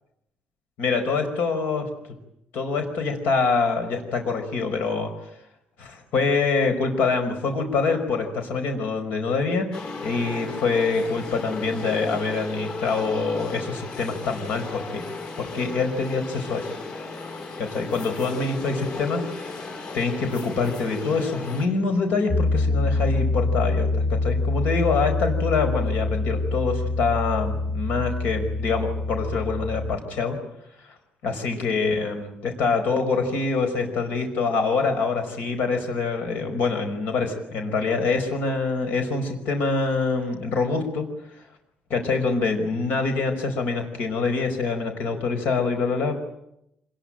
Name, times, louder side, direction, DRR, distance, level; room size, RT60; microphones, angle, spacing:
voice 1, 0.8-1.9 2.5-5.3 5.8-15.0 15.4-16.7 17.6-30.4 30.8-30.9 31.2-41.4 41.9-46.2, left 4 dB, 80° left, 6 dB, 5.2 m, -25 dB
sound 1, 9.7-21.7, left 3 dB, 50° left, 6.0 m, -35 dB
Piano, 22.3-30.0, left 3 dB, 30° left, 1.1 m, -25 dB
26.5 x 21.0 x 9.0 m, 0.80 s
cardioid pair, 175°, 3 cm